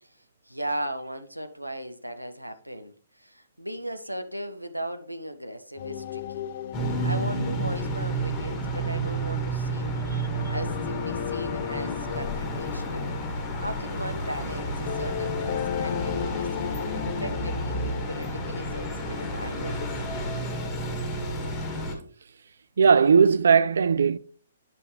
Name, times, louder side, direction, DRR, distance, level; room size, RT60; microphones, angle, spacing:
voice 1, 0.0-6.4 7.0-10.2 10.5-13.1 13.6-19.8, right 1 dB, 90° right, 0.8 m, -37 dB
sound 1, 5.8-19.9, left 10 dB, 45° left, 0.3 m, -36 dB
sound 2, 6.7-21.9, right 1 dB, 15° left, 1.9 m, -31 dB
voice 2, 10.1-10.5 22.8-24.2, right 6 dB, 60° right, 0.3 m, -19 dB
9.6 x 5.6 x 3.3 m
figure-of-eight pair, 120°, 0 cm